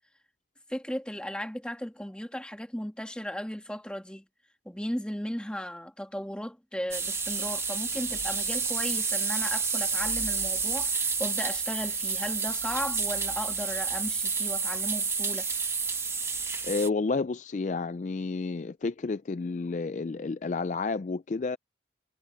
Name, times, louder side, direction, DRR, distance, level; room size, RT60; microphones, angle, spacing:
voice 1, 0.7-4.2 4.6-15.5, equal, 5° left, 1.7 m, -36 dB
sound 1, 6.9-16.9, right 5 dB, 15° right, 1.1 m, -30 dB
voice 2, 16.6-21.6, left 4 dB, 40° left, 0.4 m, -30 dB
head